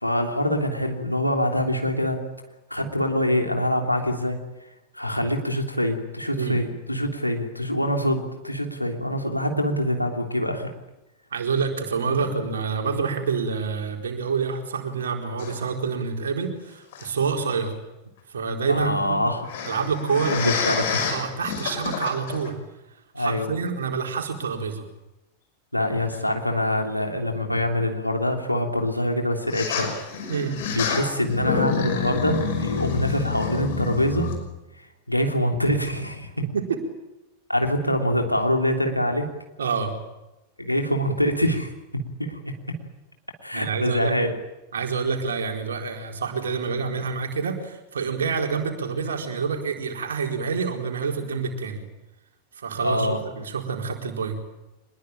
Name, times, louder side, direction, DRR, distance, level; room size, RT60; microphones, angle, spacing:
voice 1, 0.0-2.2 2.7-4.4 4.9-10.7 18.7-19.5 20.3-21.1 23.1-23.5 25.7-29.9 30.7-34.3 35.1-36.3 37.5-39.3 40.6-42.5 43.4-44.4 52.8-53.2, left 1 dB, 90° left, 3 dB, 3.2 m, -24 dB
voice 2, 11.3-17.7 18.3-19.2 19.6-20.4 21.1-22.5 23.2-24.8 30.3-30.6 36.4-36.8 39.6-39.9 43.5-44.2 44.7-51.8 52.6-54.4, right 5 dB, 65° right, 3 dB, 4.3 m, -27 dB
sound 1, 15.4-15.6 16.9-17.1 19.4-22.5 23.3-23.4 26.1-26.2 29.5-34.4, left 6 dB, 55° left, 5.8 m, -28 dB
25.0 x 21.0 x 9.0 m, 0.96 s
figure-of-eight pair, 90°, 0 cm